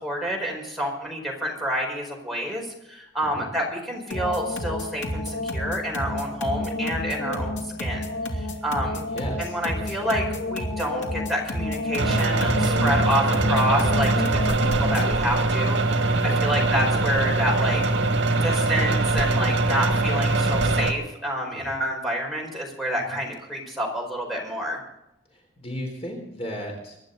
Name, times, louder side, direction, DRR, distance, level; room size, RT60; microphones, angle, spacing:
voice 1, 0.0-9.0 9.4-10.2 10.5-17.8 18.4-24.8, equal, ahead, -1 dB, 4.7 m, -28 dB
sound 1, 4.1-15.2, left 1 dB, 70° left, 2.8 m, -30 dB
voice 2, 9.1-10.3 16.3-17.0 21.5-21.7 23.0-23.2 25.3-27.0, equal, 35° left, 0 dB, 3.8 m, -37 dB
sound 2, 12.0-20.9, right 2 dB, 75° right, 1.9 m, -22 dB
24.0 x 11.5 x 4.0 m, 0.84 s
head